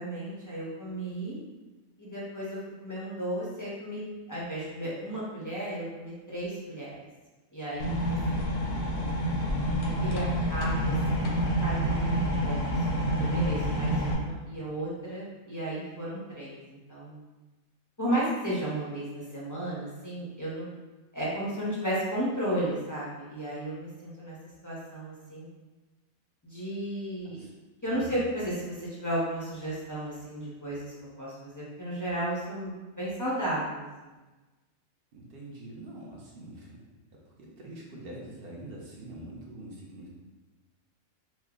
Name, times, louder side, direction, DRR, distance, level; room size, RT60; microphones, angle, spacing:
voice 1, 0.0-1.4 2.0-4.0 4.3-7.0 7.5-7.9 8.3-8.5 9.8-11.3 11.6-12.8 13.2-17.2 18.0-20.7 21.1-24.4 24.6-25.5 26.4-27.4 27.8-34.1, right 1 dB, 30° left, -8 dB, 0.3 m, -34 dB
sound 1, 7.8-14.1, equal, 60° left, 0.7 m, -28 dB
voice 2, 27.9-28.2 35.1-36.8 37.1-40.1, right 1 dB, 50° right, -3 dB, 0.8 m, -45 dB
3.1 x 2.2 x 3.6 m, 1.2 s
omnidirectional pair, 1.4 m